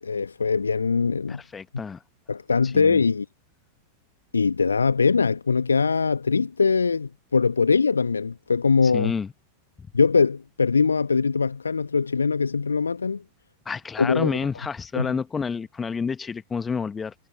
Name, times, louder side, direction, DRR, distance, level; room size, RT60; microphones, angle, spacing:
voice 1, 0.0-1.4 2.3-3.2 4.3-9.1 9.9-13.2 14.0-14.4 15.0-15.1, left 5 dB, 75° left, 1.3 m, -22 dB
voice 2, 1.3-2.0 2.6-3.0 8.8-9.3 13.6-17.1, left 5 dB, 15° left, 1.1 m, -29 dB
figure-of-eight pair, 90°, 0 cm